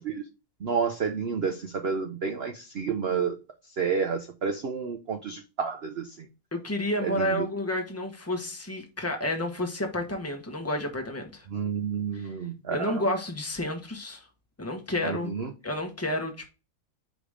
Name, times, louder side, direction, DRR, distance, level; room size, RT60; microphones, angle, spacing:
voice 1, 0.6-3.4 3.8-6.1 7.0-7.4 11.5-13.0 15.0-15.5, right 6 dB, 80° right, 0.5 m, -30 dB
voice 2, 6.5-11.5 12.1-12.3 12.7-14.3 14.6-15.3 15.6-16.5, left 1 dB, 10° left, 0.9 m, -30 dB
5.1 x 3.9 x 4.9 m
omnidirectional pair, 2.0 m